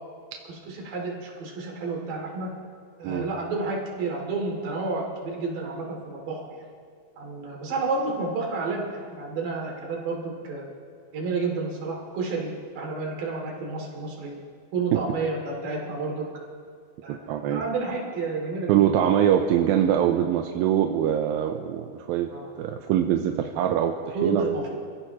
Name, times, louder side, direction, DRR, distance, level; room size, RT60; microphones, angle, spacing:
voice 1, 0.7-2.5 3.0-6.6 7.2-10.6 11.1-14.3 14.7-16.3 17.0-17.2 17.5-18.8 22.3-22.5 24.1-24.7, right 3 dB, 70° right, -1 dB, 4.3 m, -30 dB
voice 2, 17.3-17.6 18.7-22.3 22.6-24.4, right 10 dB, 85° right, 4 dB, 2.5 m, -23 dB
28.5 x 15.5 x 3.0 m, 2.1 s
omnidirectional pair, 4.2 m